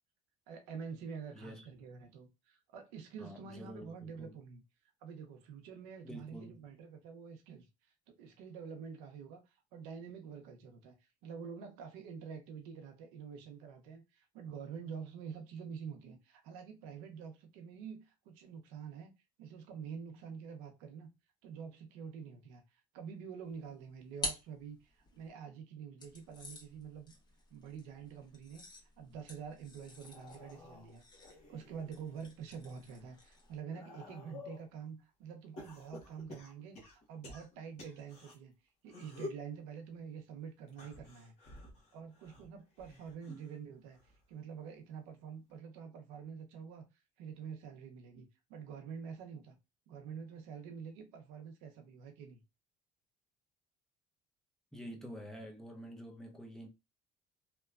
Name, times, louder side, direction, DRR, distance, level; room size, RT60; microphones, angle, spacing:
voice 1, 0.5-4.6 5.0-19.1 19.4-21.1 21.4-27.1 27.5-28.7 29.0-31.0 31.5-38.5 38.8-41.3 41.9-46.9 47.2-49.6 49.9-52.4, right 6 dB, 85° right, 0.6 m, -47 dB
voice 2, 1.3-1.7 3.2-4.4 6.0-6.7 43.3-43.5 54.7-56.7, equal, 5° left, 0.6 m, -48 dB
sound 1, 23.5-25.3 26.0-33.6, left 1 dB, 30° left, 1.1 m, -48 dB
sound 2, 29.9-32.2 32.7-34.7 35.6-38.4 38.9-39.5 40.7-43.6 43.9-44.3 45.5-45.6, left 2 dB, 55° left, 1.2 m, -51 dB
2.9 x 2.2 x 2.3 m
supercardioid pair, 95°, 14 cm